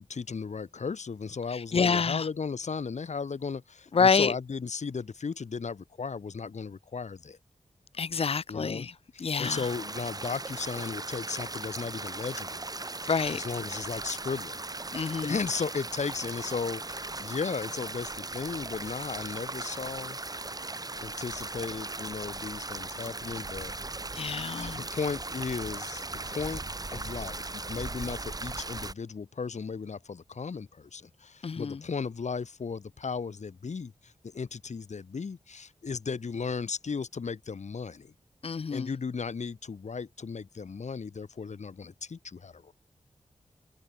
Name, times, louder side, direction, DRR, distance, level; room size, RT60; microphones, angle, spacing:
voice 1, 0.0-7.4 8.5-12.6 13.3-14.6 15.2-20.2 21.0-23.7 24.6-26.6 26.9-38.1 38.7-42.7, left 5 dB, 75° left, 5.9 m, -35 dB
voice 2, 1.7-2.3 3.9-4.3 8.0-8.9 9.2-9.6 13.1-13.4 14.9-15.3 24.2-24.8 31.4-31.8 38.4-38.9, left 5 dB, 55° left, 0.8 m, -27 dB
sound 1, 9.4-28.9, right 2 dB, 30° right, 2.0 m, -38 dB
cardioid pair, 65°, 12 cm